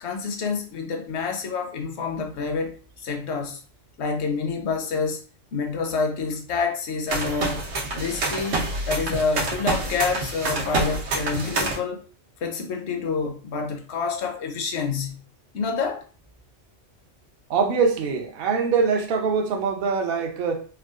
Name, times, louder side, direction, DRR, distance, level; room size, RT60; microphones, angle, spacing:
voice 1, 0.0-2.8 3.0-3.6 4.0-5.2 5.5-7.6 7.9-12.1 12.4-15.2 15.5-16.0, left 4 dB, 65° left, 0.9 m, -28 dB
sound 1, 7.1-11.8, right 2 dB, 80° right, 1.1 m, -27 dB
voice 2, 17.5-20.7, right 5 dB, 60° right, 0.7 m, -23 dB
3.5 x 2.3 x 2.3 m
omnidirectional pair, 1.3 m